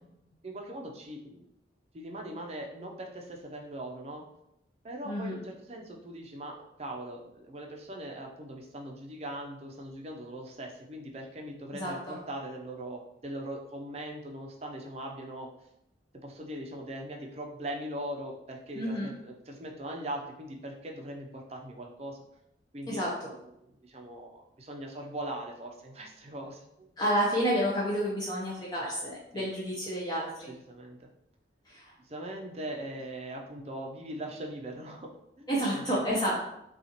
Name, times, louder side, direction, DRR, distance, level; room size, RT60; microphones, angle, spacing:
voice 1, 0.4-1.5 1.9-4.2 4.8-15.5 16.2-22.2 22.7-23.0 23.6-26.9 29.3-29.5 30.5-31.1 32.0-35.1 35.4-35.5 35.7-36.0, right 1 dB, 35° right, 1 dB, 0.6 m, -40 dB
voice 2, 11.7-12.2 18.8-19.1 22.9-23.1 27.0-30.5 31.7-31.9 35.5-36.4, equal, 20° left, -5 dB, 0.7 m, -30 dB
5.6 x 2.4 x 2.9 m, 0.82 s
head